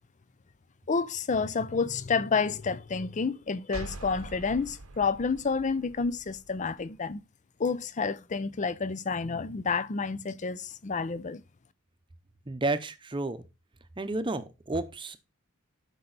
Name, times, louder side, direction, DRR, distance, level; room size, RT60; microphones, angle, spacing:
voice 1, 0.9-7.2 7.6-11.4, left 5 dB, 35° left, 0.5 m, -29 dB
sound 1, 3.7-7.2, right 2 dB, 90° right, 1.0 m, -44 dB
voice 2, 12.5-13.4 14.0-15.2, right 2 dB, 25° right, 0.8 m, -31 dB
12.0 x 5.4 x 4.0 m
head